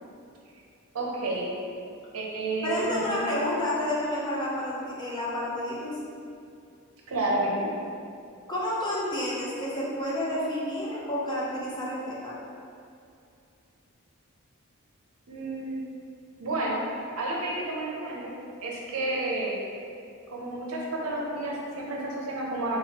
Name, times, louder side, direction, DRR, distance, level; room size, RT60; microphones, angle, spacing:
voice 1, 0.9-1.5 2.1-3.3 7.1-7.7 15.3-15.9 16.4-16.8 17.2-18.3 18.6-19.6 20.3-22.8, right 2 dB, 75° right, -2 dB, 0.6 m, -30 dB
voice 2, 2.6-6.0 8.5-12.4, left 1 dB, 20° left, -7 dB, 0.5 m, -30 dB
3.6 x 3.1 x 2.8 m, 2.5 s
head